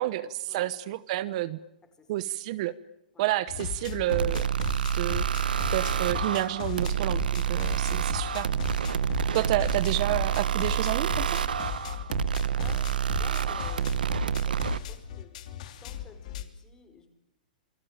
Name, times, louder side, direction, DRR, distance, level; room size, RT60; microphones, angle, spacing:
voice 1, 0.0-1.6 2.1-2.7 3.2-4.4 4.9-5.3 5.7-8.5 9.3-11.4, right 15 dB, 50° right, 15 dB, 1.0 m, -29 dB
sound 1, 3.5-16.4, left 9 dB, 55° left, 3.0 m, -37 dB
sound 2, 4.1-14.8, right 9 dB, 85° right, 1.2 m, -28 dB
voice 2, 12.6-17.1, left 4 dB, 15° left, 7 dB, 4.9 m, -52 dB
27.5 x 22.0 x 8.9 m, 0.86 s
hypercardioid pair, 140°, 5 cm